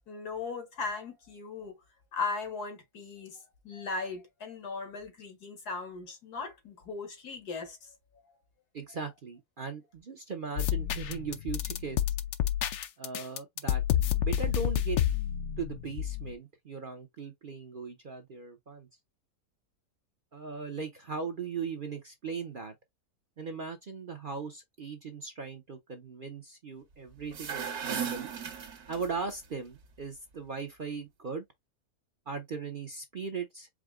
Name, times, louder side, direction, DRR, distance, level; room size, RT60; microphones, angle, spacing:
voice 1, 0.1-1.8 2.1-8.0, left 4 dB, 85° left, 2.0 m, -38 dB
voice 2, 8.7-12.0 13.0-13.8 14.2-15.0 15.6-18.9 20.3-22.7 23.4-28.3 28.9-31.4 32.3-33.7, right 5 dB, 50° right, 0.7 m, -38 dB
sound 1, 10.6-16.3, left 11 dB, 65° left, 0.8 m, -30 dB
sound 2, 27.2-29.3, right 7 dB, 75° right, 1.6 m, -36 dB
4.9 x 2.2 x 3.5 m
omnidirectional pair, 1.6 m